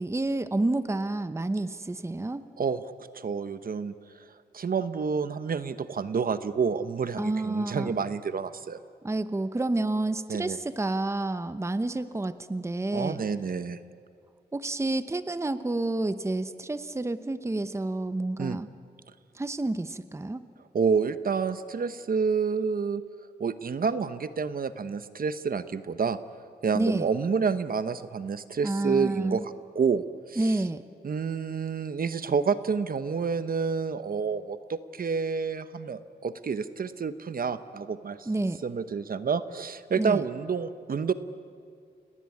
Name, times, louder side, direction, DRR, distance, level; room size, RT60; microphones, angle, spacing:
voice 1, 0.0-2.5 7.2-8.0 9.0-13.2 14.5-18.7 19.3-20.4 26.7-27.1 28.6-29.4 30.4-30.8 38.3-38.6 39.9-40.2, right 2 dB, 15° right, 12 dB, 0.8 m, -29 dB
voice 2, 3.1-3.9 4.5-8.8 10.3-10.6 12.9-13.8 18.4-18.6 20.7-23.0 23.4-26.2 26.6-30.6 31.0-38.3 38.6-41.1, right 5 dB, 55° right, 12 dB, 1.0 m, -29 dB
29.5 x 18.5 x 9.6 m, 2.3 s
wide cardioid pair, 120°, 17 cm